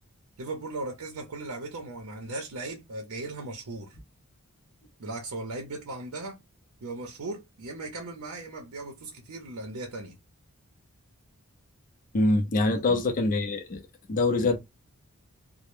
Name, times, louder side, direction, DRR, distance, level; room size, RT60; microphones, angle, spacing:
voice 1, 0.4-4.0 5.0-6.4 6.8-10.2 12.5-13.0, right 2 dB, 85° right, 0.6 m, -37 dB
voice 2, 12.1-13.8 14.1-14.6, left 2 dB, 40° left, 0.4 m, -24 dB
2.0 x 2.0 x 3.0 m
head